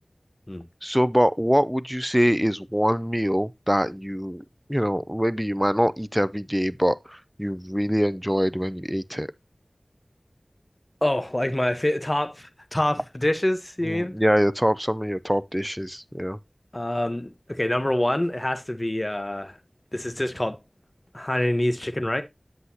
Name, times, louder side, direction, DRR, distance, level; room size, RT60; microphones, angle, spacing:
voice 1, 0.8-9.3 13.9-16.4, equal, 5° right, 0.5 m, -24 dB
voice 2, 11.0-14.1 16.7-19.6 19.9-20.6 21.1-22.2, left 1 dB, 30° left, 1.0 m, -26 dB
7.9 x 7.8 x 2.8 m
wide cardioid pair, 50°, 0 cm